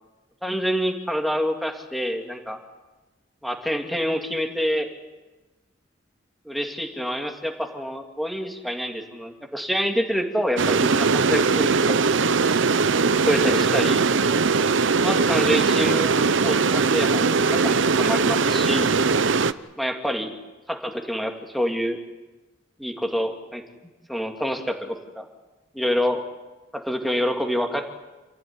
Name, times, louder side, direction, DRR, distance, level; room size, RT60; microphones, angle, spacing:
voice 1, 0.4-2.6 3.4-4.9 6.4-12.0 13.1-14.1 15.0-16.1 16.4-19.0 19.8-20.3 20.7-22.0 22.8-23.6 24.1-25.3 25.7-26.2 26.7-27.8, equal, ahead, 3 dB, 2.6 m, -27 dB
sound 1, 10.6-19.5, right 4 dB, 70° right, 0.8 m, -20 dB
28.0 x 15.0 x 10.0 m, 1.2 s
head